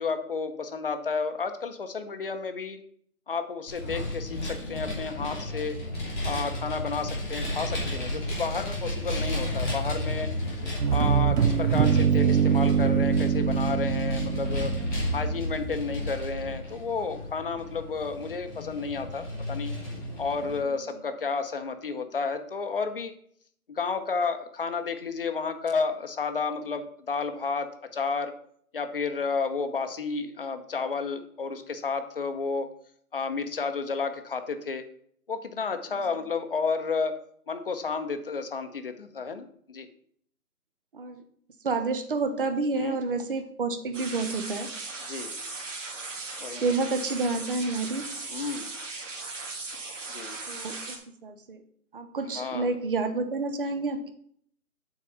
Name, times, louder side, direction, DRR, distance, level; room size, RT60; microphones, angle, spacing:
voice 1, 0.0-2.8 3.3-5.8 6.2-10.3 10.9-14.7 15.1-19.7 20.2-23.1 23.7-28.3 28.7-32.7 33.1-34.8 35.3-37.2 37.5-39.9 42.7-43.0 45.1-45.3 46.4-46.7 48.3-48.7 50.1-50.4 52.3-52.7, left 4 dB, 40° left, 8 dB, 0.9 m, -31 dB
Vehicle, 3.7-20.6, left 1 dB, ahead, 0.7 m, -33 dB
sound 1, 10.8-15.6, right 7 dB, 85° right, 0.9 m, -24 dB
voice 2, 41.6-44.7 46.6-48.0 50.5-51.6 51.9-54.1, right 3 dB, 35° right, 8 dB, 1.0 m, -29 dB
sound 2, 43.9-51.0, right 3 dB, 55° right, 2.4 m, -38 dB
8.6 x 4.1 x 6.9 m, 0.63 s
figure-of-eight pair, 155°, 45 cm